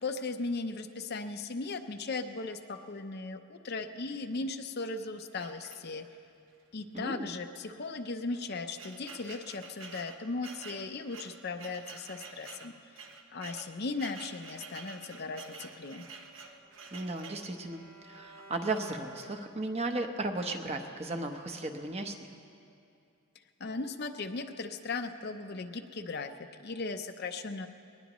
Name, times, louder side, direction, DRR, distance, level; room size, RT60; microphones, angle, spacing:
voice 1, 0.0-6.0 6.7-12.7 13.3-16.0 23.6-26.3 26.6-27.7, left 3 dB, 50° left, 6 dB, 0.7 m, -37 dB
sound 1, 5.4-6.2 7.0-7.1 7.4-7.5 8.2-17.5, right 4 dB, 65° right, 1.1 m, -49 dB
voice 2, 6.9-7.3 16.9-22.3, right 2 dB, 30° right, 4 dB, 0.9 m, -35 dB
Bowed string instrument, 15.8-20.0, right 1 dB, 85° right, 3.4 m, -55 dB
21.0 x 19.5 x 3.1 m, 2.6 s
head